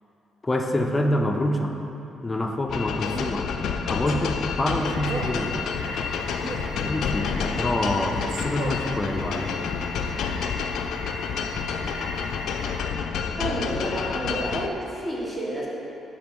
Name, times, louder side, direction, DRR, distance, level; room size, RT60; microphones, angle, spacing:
voice 1, 0.4-1.7 2.2-3.5 3.9-5.8 6.8-9.5, left 1 dB, 20° left, 3 dB, 0.5 m, -26 dB
sound 1, 2.7-14.7, left 6 dB, 75° left, 0.3 m, -29 dB
Male speech man speaking, 3.0-3.4 4.1-4.3 5.0-5.4 6.4-6.8 8.0-8.9, right 4 dB, 55° right, 0.5 m, -36 dB
sound 2, 4.8-12.8, right 1 dB, 80° right, 1.0 m, -40 dB
voice 2, 13.4-15.7, right 1 dB, 15° right, -5 dB, 1.5 m, -30 dB
5.1 x 4.9 x 5.3 m, 2.9 s
cardioid pair, 90°, 0 cm